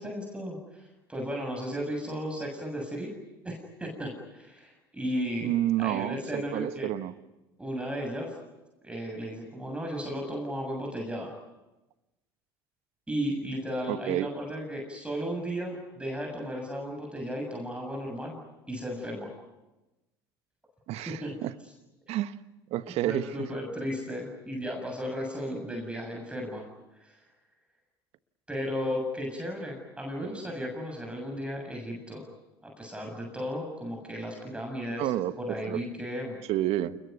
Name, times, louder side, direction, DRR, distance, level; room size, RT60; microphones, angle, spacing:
voice 1, 0.0-3.1 3.4-5.5 5.8-6.9 7.6-8.3 8.8-11.3 13.1-18.4 18.7-19.3 21.1-21.3 23.0-26.7 27.0-27.2 28.5-32.3 32.6-35.1 35.5-36.4, equal, 10° right, 1 dB, 7.3 m, -35 dB
voice 2, 5.4-7.1 13.9-14.3 20.9-21.5 22.1-22.4 22.7-23.5 30.2-30.4 35.0-35.8 36.5-37.0, right 13 dB, 55° right, 13 dB, 1.3 m, -30 dB
29.0 x 21.5 x 9.4 m, 1.0 s
hypercardioid pair, 65°, 12 cm